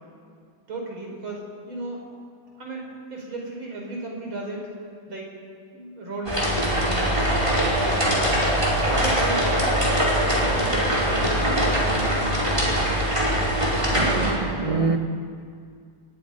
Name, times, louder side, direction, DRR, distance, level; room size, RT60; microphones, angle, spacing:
voice 1, 0.7-2.0 2.6-4.7 5.1-5.3 5.7-7.4 7.8-8.4 8.8-9.5 10.3-12.5, right 2 dB, 70° right, 0 dB, 5.3 m, -34 dB
sound 1, 6.3-14.3, equal, 15° right, 4.8 m, -22 dB
voice 2, 13.9-15.0, right 4 dB, 30° right, 6 dB, 0.6 m, -25 dB
27.5 x 21.0 x 5.4 m, 2.2 s
omnidirectional pair, 2.3 m